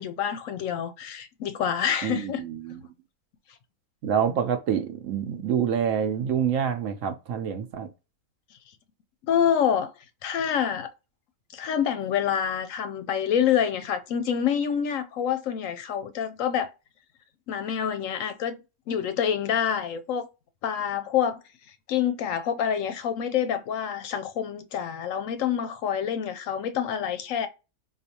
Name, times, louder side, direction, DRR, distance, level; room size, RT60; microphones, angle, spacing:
voice 1, 0.0-2.4 9.3-9.9 10.2-10.9 11.5-16.7 17.5-18.6 18.9-20.3 20.6-21.4 21.9-27.5, left 8 dB, 70° left, 0.9 m, -27 dB
voice 2, 2.0-2.8 4.0-7.9, right 8 dB, 65° right, 1.0 m, -27 dB
4.0 x 2.5 x 2.7 m
omnidirectional pair, 1.5 m